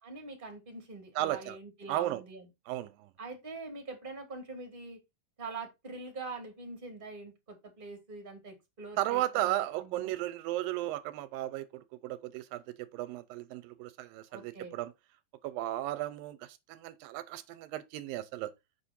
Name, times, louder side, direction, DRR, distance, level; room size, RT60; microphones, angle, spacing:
voice 1, 0.0-2.4 3.2-5.0 5.4-10.1 14.3-14.8, right 3 dB, 15° right, 2.5 m, -44 dB
voice 2, 1.2-1.6 1.9-2.2 2.7-3.1 9.0-14.9 15.4-18.5, right 14 dB, 85° right, 2.4 m, -35 dB
8.2 x 5.2 x 4.3 m
omnidirectional pair, 4.1 m